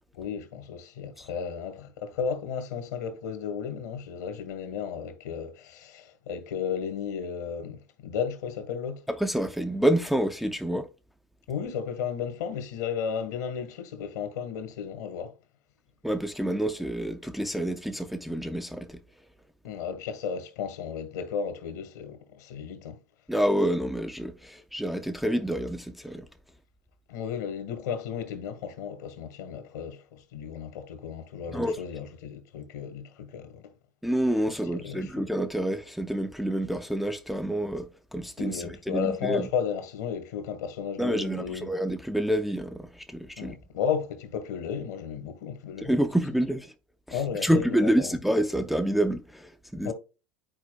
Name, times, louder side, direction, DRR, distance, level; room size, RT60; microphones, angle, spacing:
voice 1, 0.2-9.0 11.5-15.3 19.6-23.0 27.1-33.7 34.7-35.3 38.4-41.7 43.4-45.9 47.1-48.2 49.8-49.9, left 7 dB, 60° left, 1.4 m, -34 dB
voice 2, 9.1-10.9 16.0-19.0 23.3-26.3 31.5-31.8 34.0-39.5 41.0-43.6 45.8-46.7 47.1-49.9, right 1 dB, ahead, 0.5 m, -28 dB
11.0 x 4.5 x 2.2 m
figure-of-eight pair, 80°, 10 cm